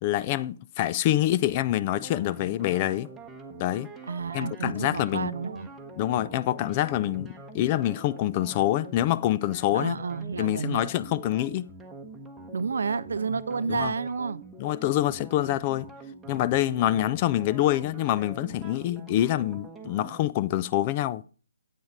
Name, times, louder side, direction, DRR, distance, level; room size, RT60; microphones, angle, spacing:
voice 1, 0.0-3.1 3.6-3.9 4.3-5.3 6.0-10.0 10.4-11.7 13.7-13.9 14.6-15.9 16.3-21.2, left 14 dB, 30° left, 0.4 m, -26 dB
sound 1, 2.0-20.2, right 2 dB, 5° right, 1.1 m, -44 dB
voice 2, 4.1-5.7 9.7-10.9 12.5-14.4, right 5 dB, 60° right, 0.4 m, -30 dB
8.4 x 7.8 x 5.1 m
figure-of-eight pair, 135°, 0 cm